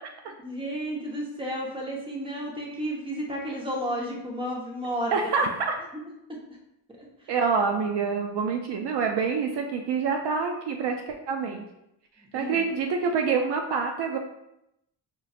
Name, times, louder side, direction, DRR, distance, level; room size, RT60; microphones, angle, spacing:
voice 1, 0.4-5.2 5.9-6.0 6.3-6.4 12.3-12.6, equal, 10° right, -2 dB, 1.0 m, -32 dB
voice 2, 5.1-5.7 7.3-11.7 12.3-14.2, right 5 dB, 65° right, 4 dB, 0.5 m, -26 dB
5.3 x 2.5 x 2.4 m, 0.85 s
cardioid pair, 85°, 45 cm